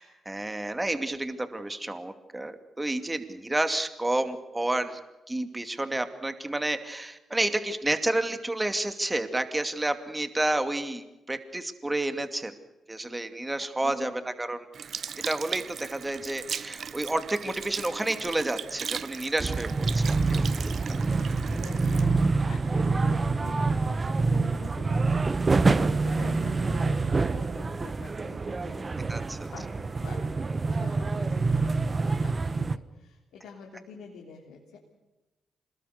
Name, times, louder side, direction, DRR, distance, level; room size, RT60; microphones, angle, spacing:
voice 1, 0.0-5.0 5.3-12.5 12.9-14.1 14.4-14.7 15.2-20.5 20.8-21.0 29.1-29.5, right 2 dB, 20° right, 8 dB, 2.5 m, -30 dB
Sink (filling or washing) / Liquid, 14.7-23.3 23.9-24.1, right 7 dB, 60° right, 0.8 m, -38 dB
sound 1, 19.4-32.8, right 3 dB, 35° right, 1.2 m, -26 dB
voice 2, 20.3-34.8, left 5 dB, 75° left, -1 dB, 3.4 m, -46 dB
26.5 x 20.5 x 6.7 m, 1.0 s
hypercardioid pair, 45°, 0 cm